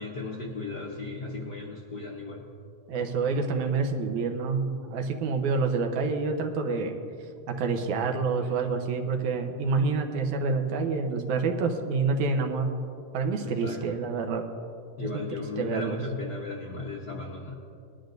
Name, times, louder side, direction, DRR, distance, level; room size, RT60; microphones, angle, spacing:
voice 1, 0.0-2.4 13.4-13.8 15.0-17.5, left 2 dB, 65° left, -3 dB, 1.0 m, -36 dB
voice 2, 2.9-7.0 7.5-12.7 13.1-14.5 15.1-15.2 15.6-16.0, right 4 dB, 85° right, 4 dB, 2.4 m, -27 dB
20.5 x 11.5 x 2.6 m, 2.5 s
omnidirectional pair, 3.4 m